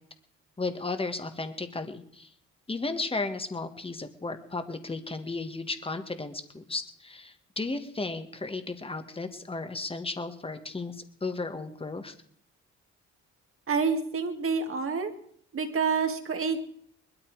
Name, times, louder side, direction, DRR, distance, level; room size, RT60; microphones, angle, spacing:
voice 1, 0.6-2.3 2.7-12.1, left 3 dB, 20° left, 8 dB, 1.8 m, -34 dB
voice 2, 13.7-15.1 15.5-16.6, right 5 dB, 45° right, 6 dB, 2.2 m, -28 dB
20.5 x 13.0 x 4.8 m, 0.64 s
cardioid pair, 90°, 30 cm